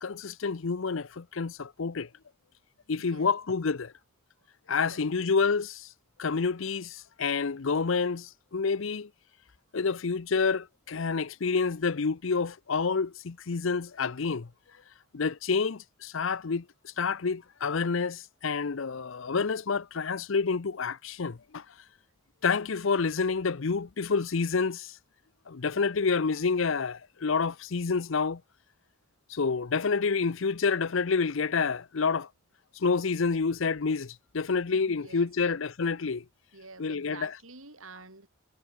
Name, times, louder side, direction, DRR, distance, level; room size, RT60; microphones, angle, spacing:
voice 1, 0.0-2.1 2.9-3.9 4.7-5.9 6.2-9.1 9.7-14.5 15.1-16.6 17.0-21.6 22.4-24.9 25.5-28.4 29.3-32.3 32.8-36.2 36.8-37.3, left 5 dB, 65° left, 0.6 m, -28 dB
voice 2, 3.0-3.3 4.9-5.3 34.7-35.6 36.5-38.3, right 3 dB, 75° right, 5.8 m, -49 dB
head